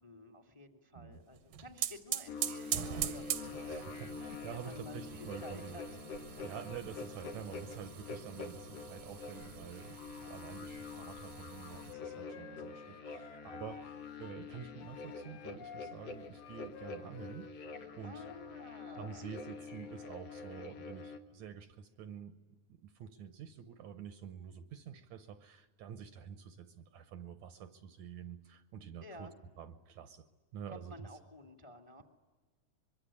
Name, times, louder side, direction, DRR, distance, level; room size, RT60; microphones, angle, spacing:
voice 1, 0.0-3.9 4.5-5.8 18.0-19.3 29.0-29.3 30.7-32.0, left 1 dB, 10° left, 4 dB, 1.6 m, -52 dB
sound 1, 1.3-11.9, right 11 dB, 85° right, 2.8 m, -43 dB
sound 2, 2.3-21.2, left 4 dB, 55° left, 2.6 m, -46 dB
voice 2, 3.7-5.8 6.4-17.5 18.0-18.3 19.0-29.3 29.6-30.3 30.5-31.1, right 8 dB, 70° right, 10 dB, 2.1 m, -48 dB
Wind instrument woodwind instrument, 11.6-14.4 14.8-17.9, left 7 dB, 80° left, 3.0 m, -52 dB
24.0 x 23.5 x 9.9 m, 1.3 s
omnidirectional pair, 3.7 m